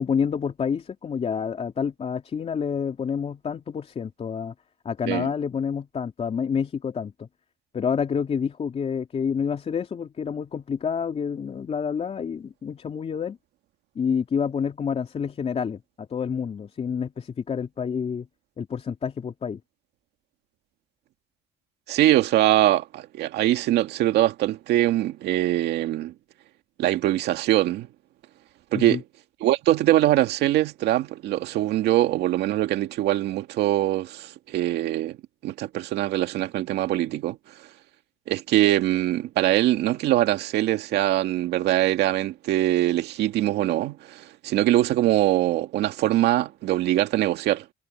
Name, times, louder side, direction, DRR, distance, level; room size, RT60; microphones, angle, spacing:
voice 1, 0.0-4.5 4.8-7.3 7.7-13.4 13.9-18.3 18.6-19.6 28.7-29.0, left 6 dB, 40° left, 3.3 m, -28 dB
voice 2, 21.9-26.1 26.8-27.9 28.7-29.0 29.4-35.2 35.4-37.4 38.3-47.7, right 14 dB, 80° right, 2.2 m, -23 dB
cardioid pair, 110°, 17 cm